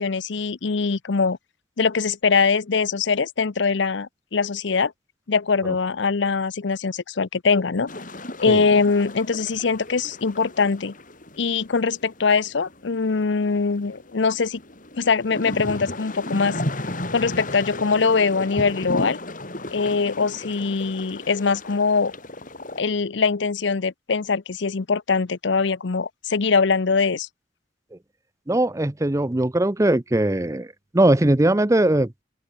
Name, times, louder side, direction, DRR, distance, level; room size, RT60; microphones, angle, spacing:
voice 1, 0.0-1.4 1.8-4.9 5.3-7.9 8.4-10.9 11.4-14.6 15.0-16.6 17.1-19.2 19.7-22.1 22.8-27.3, left 4 dB, 65° left, 0.7 m, -22 dB
sound 1, 7.9-22.8, left 1 dB, 45° left, 7.1 m, -35 dB
voice 2, 28.5-32.1, right 1 dB, 15° right, 0.6 m, -20 dB
open air
head